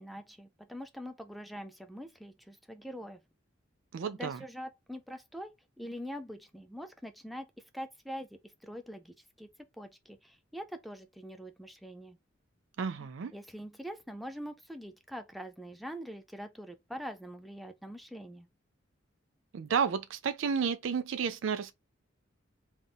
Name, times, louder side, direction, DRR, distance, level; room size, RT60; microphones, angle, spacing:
voice 1, 0.0-3.2 4.1-9.5 9.8-12.2 13.0-18.5, equal, ahead, 0.4 m, -44 dB
voice 2, 3.9-4.4 12.8-13.3 19.5-21.8, right 6 dB, 75° right, 0.4 m, -31 dB
3.6 x 2.4 x 3.8 m
head